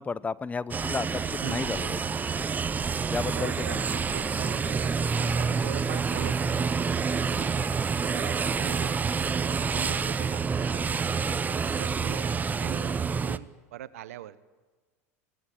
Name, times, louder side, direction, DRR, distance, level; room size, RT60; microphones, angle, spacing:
voice 1, 0.0-2.0 3.1-3.8, left 4 dB, 20° left, 18 dB, 0.7 m, -33 dB
sound 1, 0.7-13.4, right 5 dB, 20° right, 0.8 m, -28 dB
voice 2, 1.4-2.0 3.3-7.5 8.1-11.1 11.8-12.3 12.6-13.0 13.2-14.5, right 12 dB, 80° right, 16 dB, 1.1 m, -42 dB
25.0 x 18.0 x 9.3 m, 1.3 s
hypercardioid pair, 90°, 8 cm